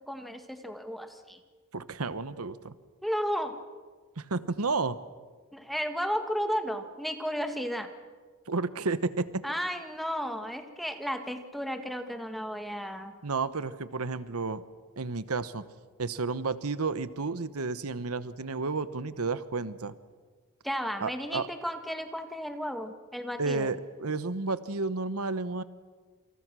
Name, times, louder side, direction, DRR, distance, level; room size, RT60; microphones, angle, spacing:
voice 1, 0.1-1.4 3.0-3.6 5.5-7.9 9.4-13.2 20.6-23.7, equal, ahead, 6 dB, 1.9 m, -33 dB
voice 2, 1.7-2.7 4.2-5.0 8.5-9.4 13.2-14.6 15.0-15.6 16.0-19.9 21.0-21.5 23.4-25.6, right 3 dB, 90° right, 14 dB, 1.1 m, -31 dB
28.5 x 28.0 x 6.2 m, 1.5 s
head